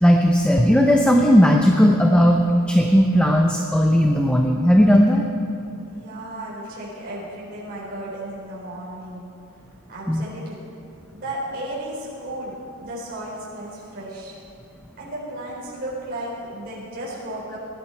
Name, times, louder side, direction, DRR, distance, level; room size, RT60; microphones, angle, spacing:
voice 1, 0.0-5.2 10.1-10.2, equal, 5° left, 2 dB, 0.6 m, -16 dB
voice 2, 5.8-9.3 9.9-10.6 11.1-14.4 15.0-17.6, right 1 dB, 45° right, -7 dB, 4.4 m, -34 dB
19.5 x 12.0 x 4.5 m, 2.5 s
head